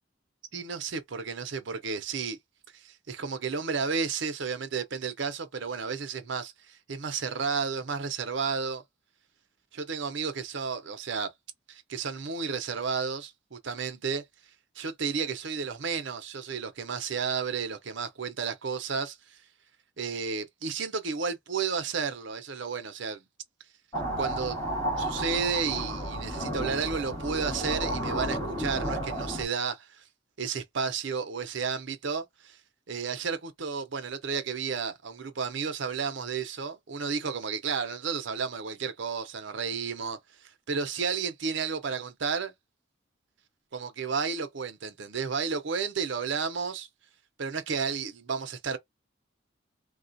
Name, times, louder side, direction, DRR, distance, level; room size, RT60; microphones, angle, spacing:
voice 1, 0.5-2.4 2.7-8.8 9.7-11.3 11.7-14.2 14.8-19.4 20.0-23.2 24.2-24.6 25.0-30.0 30.4-32.6 32.9-42.5 43.7-46.9 47.4-48.8, right 5 dB, 70° right, 0.7 m, -32 dB
sound 1, 23.9-29.4, right 1 dB, 20° left, 1.5 m, -32 dB
3.2 x 2.3 x 2.6 m
head